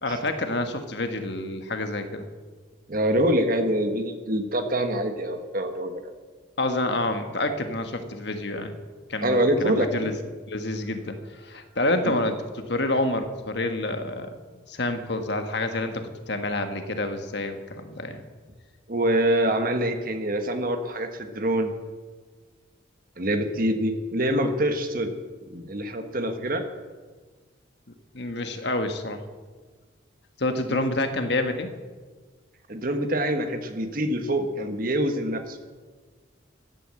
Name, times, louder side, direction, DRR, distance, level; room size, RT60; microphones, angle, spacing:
voice 1, 0.0-2.2 6.6-8.8 9.1-10.2 10.5-11.2 11.4-18.2 28.1-29.2 30.4-31.7, left 2 dB, 60° left, 7 dB, 1.5 m, -28 dB
voice 2, 2.9-6.0 9.2-10.1 12.1-12.2 18.9-21.7 23.2-25.1 25.5-26.6 30.7-30.8 32.7-35.6, right 1 dB, 45° right, 7 dB, 1.4 m, -25 dB
15.5 x 9.8 x 7.6 m, 1.4 s
head